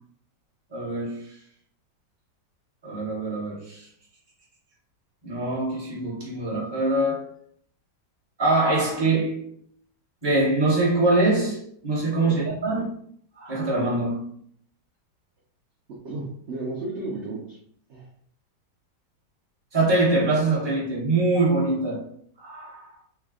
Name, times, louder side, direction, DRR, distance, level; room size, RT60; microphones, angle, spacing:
voice 1, 0.7-1.3 2.8-3.9 5.2-7.3 8.4-9.5 10.2-12.8 13.4-14.3 19.7-22.1 22.4-22.9, right 2 dB, 20° right, 0.9 m, -24 dB
voice 2, 15.9-17.6 17.9-18.1, right 2 dB, 65° right, 0.7 m, -33 dB
3.3 x 2.2 x 3.6 m
omnidirectional pair, 1.9 m